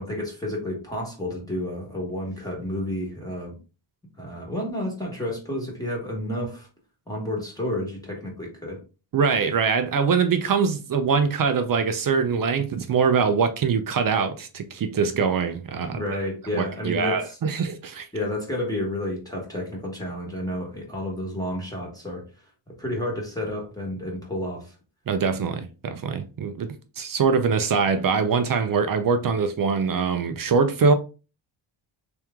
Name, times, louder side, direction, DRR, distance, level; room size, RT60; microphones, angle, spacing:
voice 1, 0.0-3.6 4.2-6.7 7.1-8.8 15.9-17.4 18.1-22.2 22.8-24.7, left 1 dB, 5° left, 1.2 m, -30 dB
voice 2, 9.1-16.0 16.5-18.1 25.1-30.9, right 5 dB, 45° right, 0.5 m, -23 dB
3.5 x 3.0 x 3.5 m
wide cardioid pair, 130°, 49 cm